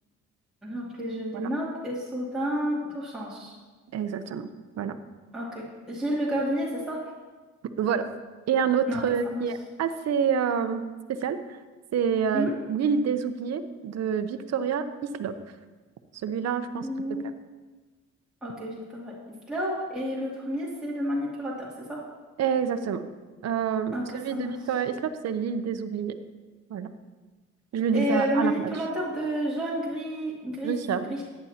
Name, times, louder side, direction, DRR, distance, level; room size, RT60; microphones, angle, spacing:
voice 1, 0.6-3.6 5.3-7.0 8.9-9.4 12.3-12.5 16.8-17.2 18.4-19.1 19.5-22.0 23.9-24.5 27.9-30.7 31.1-31.2, equal, ahead, -7 dB, 2.6 m, -30 dB
voice 2, 3.9-4.5 4.8-4.9 7.8-8.1 8.5-10.8 11.2-11.4 11.9-14.8 15.1-15.3 16.2-16.9 22.4-23.1 23.4-26.1 26.7-26.9 27.7-28.7 30.6-31.1, right 7 dB, 60° right, 9 dB, 0.8 m, -27 dB
14.0 x 9.9 x 2.9 m, 1.3 s
cardioid pair, 90°, 30 cm